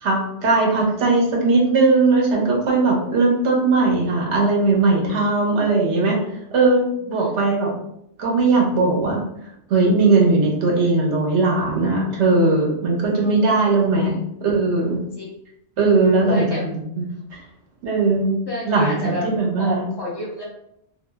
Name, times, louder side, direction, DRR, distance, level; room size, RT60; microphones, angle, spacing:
voice 1, 0.0-6.2 6.5-7.7 8.2-9.3 9.7-15.0 15.8-16.4 17.0-17.1 17.8-18.4 18.7-19.8, right 3 dB, 90° right, -1 dB, 1.1 m, -19 dB
voice 2, 7.1-7.4 10.8-10.9 13.2-13.3 15.2-15.3 16.2-16.6 18.5-19.3 19.6-20.4, equal, 25° left, -5 dB, 0.9 m, -30 dB
2.5 x 2.0 x 3.3 m, 0.76 s
omnidirectional pair, 1.2 m